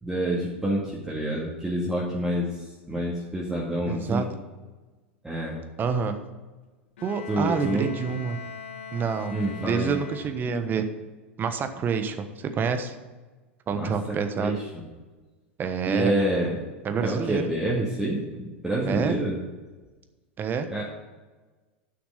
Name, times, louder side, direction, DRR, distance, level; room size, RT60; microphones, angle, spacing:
voice 1, 0.0-4.3 5.2-5.6 7.3-7.9 9.3-9.9 13.7-13.9 14.4-14.5 15.9-16.6 17.0-19.4 20.7-20.8, right 1 dB, 5° right, -5 dB, 2.1 m, -27 dB
voice 2, 3.9-4.3 5.8-6.2 7.0-8.4 8.9-10.9 11.4-13.0 13.7-14.6 15.6-16.1 16.8-17.4 18.9-19.2 20.4-20.7, right 6 dB, 30° right, 8 dB, 1.1 m, -28 dB
Bowed string instrument, 7.0-10.7, left 6 dB, 70° left, 1.3 m, -42 dB
10.5 x 5.9 x 5.6 m, 1.3 s
hypercardioid pair, 90°, 6 cm